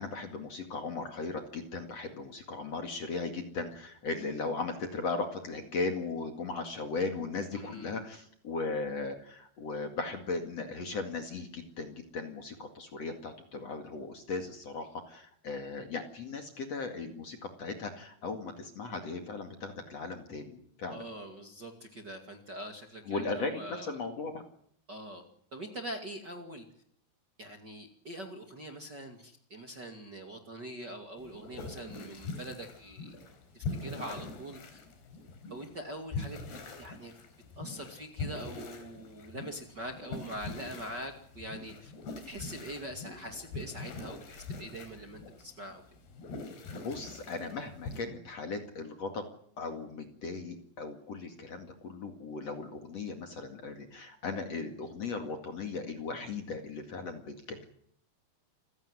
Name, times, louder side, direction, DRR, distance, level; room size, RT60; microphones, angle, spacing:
voice 1, 0.0-21.0 23.1-24.4 46.8-49.3 49.6-57.6, left 3 dB, 45° left, 6 dB, 2.8 m, -37 dB
voice 2, 7.5-8.0 20.9-23.9 24.9-25.2 25.5-26.7 27.4-33.1 33.5-34.8 35.5-37.1 37.6-41.9 42.2-45.8, right 1 dB, 30° right, 4 dB, 2.3 m, -43 dB
sound 1, 31.2-48.0, left 3 dB, 75° left, 6.1 m, -43 dB
28.0 x 16.5 x 9.7 m, 0.65 s
omnidirectional pair, 4.7 m